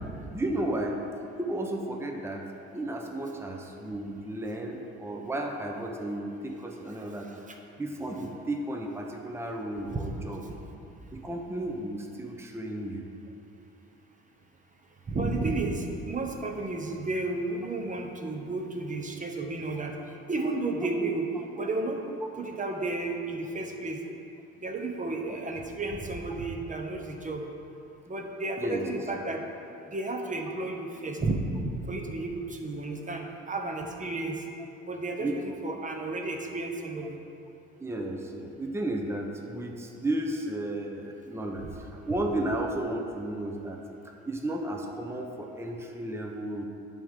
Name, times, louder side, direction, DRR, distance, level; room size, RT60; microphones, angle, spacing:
voice 1, 0.3-1.0 1.4-2.5 2.7-7.3 7.8-10.4 11.1-13.0 28.6-28.9 35.2-35.4 37.8-43.8 44.2-46.6, right 1 dB, 10° right, 1 dB, 0.8 m, -33 dB
voice 2, 15.1-19.9 20.3-21.3 21.6-22.0 22.4-24.0 24.6-27.4 28.1-29.4 29.9-34.4 34.8-35.3 35.6-37.2, right 2 dB, 25° right, 2 dB, 1.1 m, -32 dB
8.9 x 3.6 x 6.6 m, 2.7 s
supercardioid pair, 70°, 29 cm